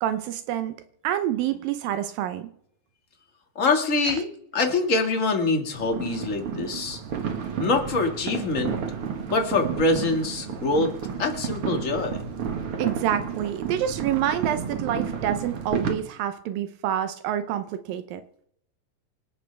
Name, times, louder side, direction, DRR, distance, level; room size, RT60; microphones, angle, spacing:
voice 1, 0.0-0.7 1.0-2.5 4.0-4.2 12.8-18.2, right 10 dB, 85° right, 9 dB, 2.6 m, -27 dB
voice 2, 3.6-7.0 7.6-8.7 9.1-10.9 11.2-12.2, left 3 dB, 30° left, 3 dB, 1.8 m, -24 dB
sound 1, 5.7-15.9, right 7 dB, 50° right, 1.9 m, -31 dB
26.5 x 10.5 x 3.4 m, 0.71 s
omnidirectional pair, 4.0 m